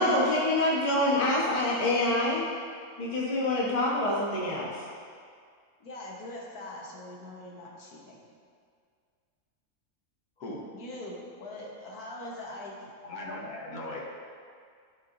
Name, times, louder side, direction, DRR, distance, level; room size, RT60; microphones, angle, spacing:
voice 1, 0.0-2.4 3.0-4.7, left 1 dB, 25° left, -5 dB, 0.9 m, -26 dB
voice 2, 5.8-8.3 10.7-12.9 13.2-13.5, left 1 dB, 85° left, -3 dB, 1.6 m, -42 dB
voice 3, 10.4-10.7 13.0-14.0, left 2 dB, 70° left, -2 dB, 1.5 m, -38 dB
12.5 x 4.3 x 2.6 m, 2.1 s
omnidirectional pair, 1.6 m